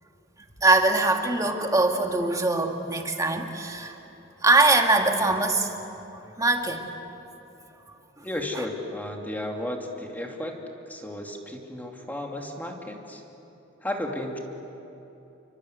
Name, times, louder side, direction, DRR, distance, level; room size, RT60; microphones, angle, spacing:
voice 1, 0.6-3.9 4.4-5.7 6.4-6.9 8.2-8.3, right 2 dB, 15° right, 3 dB, 2.0 m, -22 dB
voice 2, 8.2-10.6 10.9-13.2 13.8-14.4, left 1 dB, 10° left, 1 dB, 2.7 m, -33 dB
29.5 x 24.5 x 8.2 m, 3.0 s
head